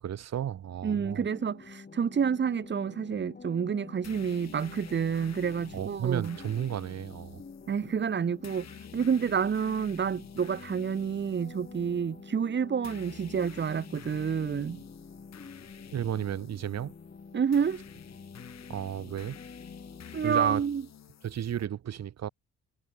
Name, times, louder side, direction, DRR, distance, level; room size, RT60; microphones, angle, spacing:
voice 1, 0.0-1.3 5.7-7.4 15.9-16.9 18.7-19.4 20.2-20.6 21.2-22.3, right 10 dB, 60° right, 2.0 m, -33 dB
voice 2, 0.8-6.4 7.7-14.8 17.3-17.8 20.1-20.8, right 7 dB, 35° right, 1.3 m, -29 dB
sound 1, 0.9-20.5, left 4 dB, 30° left, 5.3 m, -48 dB
sound 2, 4.0-21.7, left 9 dB, 60° left, 4.5 m, -51 dB
cardioid pair, 90°, 30 cm